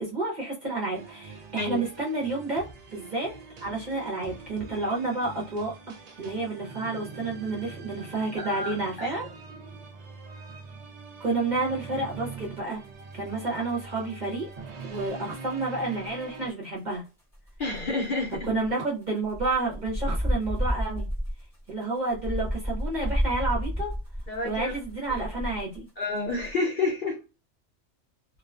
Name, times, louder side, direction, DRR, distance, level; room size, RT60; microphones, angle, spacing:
voice 1, 0.0-3.3 3.6-9.2 11.2-12.8 13.1-14.5 14.9-17.0 18.4-21.1 21.7-23.9 24.4-25.9, right 3 dB, 45° right, 0.7 m, -30 dB
sound 1, 0.9-16.5, right 4 dB, 70° right, 0.3 m, -43 dB
voice 2, 8.4-9.1 17.6-18.5 24.3-24.7 25.1-25.2 26.0-27.2, left 3 dB, 50° left, 0.8 m, -29 dB
sound 2, 12.4-14.8 15.1-15.5 15.8-15.9 16.1-16.2 16.6-16.7 16.9-17.0 17.3-25.9 26.2-26.5, equal, ahead, 0.8 m, -31 dB
2.4 x 2.2 x 2.3 m
omnidirectional pair, 1.3 m